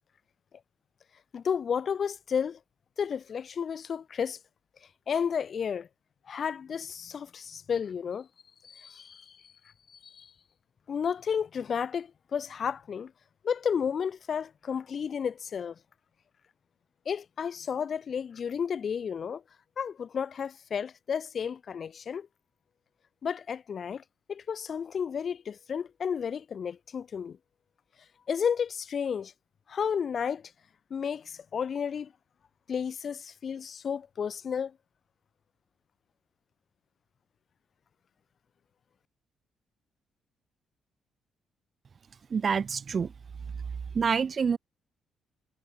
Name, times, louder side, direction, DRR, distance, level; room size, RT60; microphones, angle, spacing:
voice 1, 1.3-2.6 3.0-4.4 5.1-5.9 6.3-8.3 8.6-9.5 9.9-10.3 10.9-13.1 13.4-15.7 17.1-19.4 19.8-22.3 23.2-24.0 24.3-27.4 28.3-29.3 29.7-30.5 30.9-32.1 32.7-34.7, left 7 dB, 50° left, 1.1 m, -32 dB
voice 2, 42.3-43.1 43.9-44.6, right 6 dB, 45° right, 0.3 m, -27 dB
cardioid pair, 90°, 0 cm